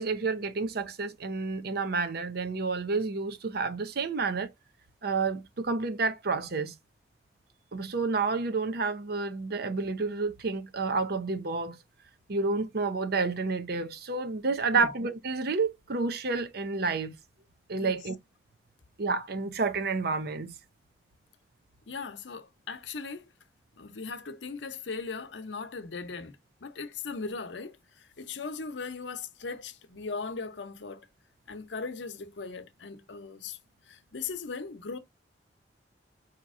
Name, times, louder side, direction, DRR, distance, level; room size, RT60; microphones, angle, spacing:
voice 1, 0.0-4.5 5.0-6.7 7.7-11.8 12.3-17.1 17.7-18.2 19.0-20.5, right 4 dB, 60° right, 0.7 m, -30 dB
voice 2, 21.9-23.3 23.8-31.1 31.5-33.6 33.9-35.0, left 4 dB, 85° left, 0.7 m, -38 dB
5.0 x 2.9 x 3.5 m
head